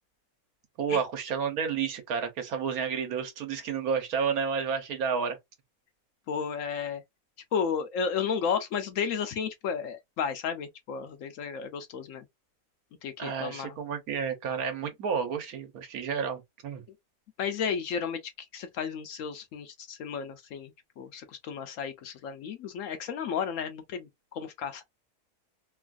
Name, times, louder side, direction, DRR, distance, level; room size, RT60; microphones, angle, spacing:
voice 1, 0.8-5.4 13.2-16.8, right 6 dB, 75° right, 1.3 m, -31 dB
voice 2, 6.3-7.0 7.5-12.3 13.0-13.8 17.4-24.8, left 6 dB, 70° left, 0.9 m, -33 dB
3.1 x 2.4 x 2.3 m
omnidirectional pair, 1.6 m